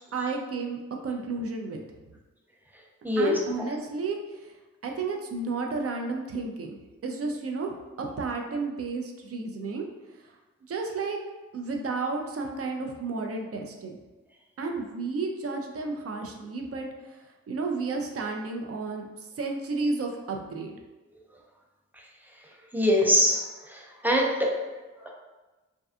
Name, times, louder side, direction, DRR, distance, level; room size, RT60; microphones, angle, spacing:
voice 1, 0.1-1.8 3.2-4.5 4.8-6.8 7.0-9.8 10.7-11.2 11.5-14.0 14.6-19.1 19.4-20.8, right 3 dB, 50° right, 2 dB, 0.5 m, -32 dB
voice 2, 3.0-3.4 22.7-23.4 23.7-24.5 25.0-25.1, equal, 5° right, -2 dB, 0.6 m, -23 dB
2.6 x 2.3 x 2.3 m, 1.2 s
supercardioid pair, 40°, 31 cm